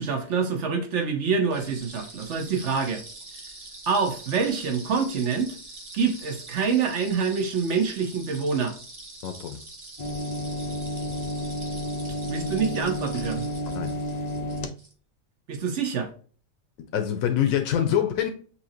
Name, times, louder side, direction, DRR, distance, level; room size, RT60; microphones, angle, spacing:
voice 1, 0.0-3.0 3.9-5.5 5.9-8.8 12.3-13.5 15.5-16.1, right 5 dB, 60° right, 1.2 m, -26 dB
sound 1, 1.5-14.9, right 2 dB, 30° right, 1.0 m, -44 dB
voice 2, 9.2-9.6 13.7-13.9 16.9-18.3, left 10 dB, 85° left, 1.1 m, -25 dB
sound 2, 10.0-14.7, left 1 dB, 55° left, 0.4 m, -31 dB
5.7 x 2.7 x 2.7 m
omnidirectional pair, 1.4 m